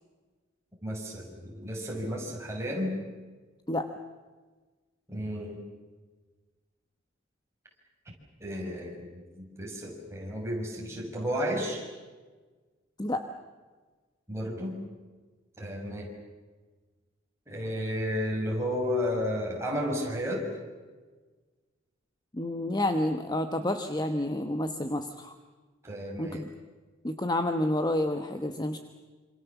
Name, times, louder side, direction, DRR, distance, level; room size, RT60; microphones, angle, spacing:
voice 1, 0.8-3.0 5.1-5.6 8.4-11.9 14.3-14.8 15.6-16.1 17.5-20.5 25.8-26.4, equal, 15° right, -2 dB, 5.8 m, -32 dB
voice 2, 22.3-25.3 26.2-26.5 27.0-28.8, left 1 dB, 20° left, 7 dB, 1.2 m, -29 dB
27.5 x 25.5 x 7.2 m, 1.3 s
head